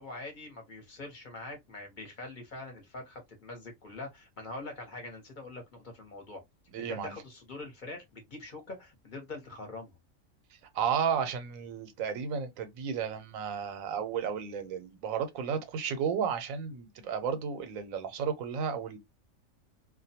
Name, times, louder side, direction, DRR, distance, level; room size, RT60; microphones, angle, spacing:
voice 1, 0.0-6.4 6.8-10.0, left 2 dB, 40° left, 0.9 m, -44 dB
voice 2, 6.7-7.1 10.7-19.0, right 7 dB, 85° right, 1.0 m, -33 dB
2.4 x 2.2 x 2.7 m
omnidirectional pair, 1.4 m